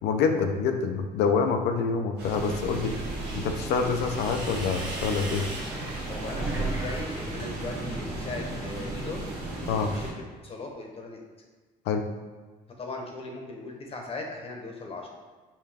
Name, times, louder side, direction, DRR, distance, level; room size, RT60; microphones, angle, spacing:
voice 1, 0.0-2.9 3.3-5.5 9.7-9.9 11.9-12.1, left 5 dB, 80° left, 6 dB, 0.5 m, -26 dB
sound 1, 2.2-10.1, right 2 dB, 85° right, 1.3 m, -35 dB
sound 2, 2.3-7.0 7.3-8.0, right 2 dB, 25° right, 1.1 m, -37 dB
voice 2, 2.8-3.4 6.1-9.3 9.9-10.1 10.4-11.2 12.8-15.1, left 2 dB, 35° left, 1 dB, 0.8 m, -38 dB
5.4 x 2.3 x 3.4 m, 1.3 s
cardioid pair, 110°, 17 cm